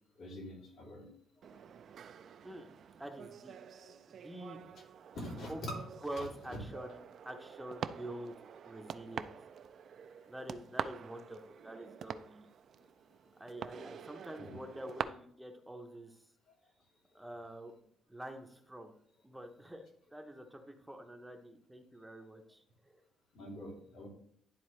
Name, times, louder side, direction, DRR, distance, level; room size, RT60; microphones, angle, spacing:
voice 1, 0.1-1.1 1.5-1.6 3.7-4.0 4.7-4.8 5.1-5.7 6.2-6.3 14.4-14.6 23.3-24.1, left 1 dB, 70° left, -3 dB, 3.1 m, -45 dB
sound 1, 1.4-15.0, right 8 dB, 55° right, 0.4 m, -46 dB
voice 2, 3.0-3.5 4.1-4.6 5.5-5.6 6.0-7.0 7.2-8.3 8.6-9.3 10.3-12.5 13.4-16.2 17.1-17.7 18.1-18.9 19.2-19.8 20.1-23.0, right 1 dB, 5° right, 4 dB, 0.7 m, -46 dB
11.0 x 3.8 x 3.2 m, 0.65 s
cardioid pair, 125°, 0 cm